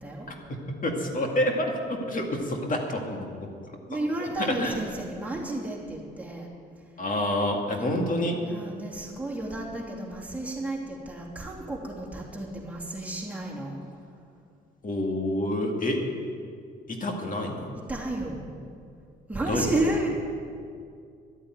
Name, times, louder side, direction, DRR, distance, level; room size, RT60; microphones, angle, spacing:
voice 1, 0.3-3.3 4.5-4.8 7.0-8.4 14.8-16.1 16.9-17.7 19.5-19.7, left 1 dB, 40° left, 2 dB, 2.1 m, -28 dB
voice 2, 3.9-6.5 7.7-8.0 8.4-13.8 17.7-18.5 19.3-20.1, right 2 dB, 5° right, -3 dB, 3.0 m, -32 dB
12.5 x 8.6 x 9.1 m, 2.3 s
cardioid pair, 90°, 20 cm